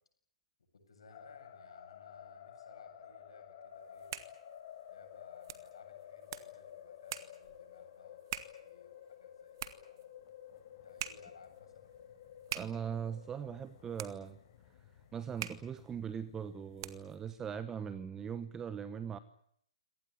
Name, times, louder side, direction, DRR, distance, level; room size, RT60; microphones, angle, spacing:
voice 1, 0.7-4.1 4.9-10.2 10.7-12.3 13.4-13.5, left 5 dB, 65° left, 5 dB, 7.8 m, -59 dB
sound 1, 1.1-18.5, left 10 dB, 40° left, 4.3 m, -54 dB
sound 2, 3.8-17.3, right 10 dB, 45° right, 2.0 m, -47 dB
voice 2, 12.5-14.4 15.1-19.2, right 7 dB, 15° right, 14 dB, 1.0 m, -40 dB
25.5 x 18.5 x 9.8 m, 0.69 s
figure-of-eight pair, 120°, 3 cm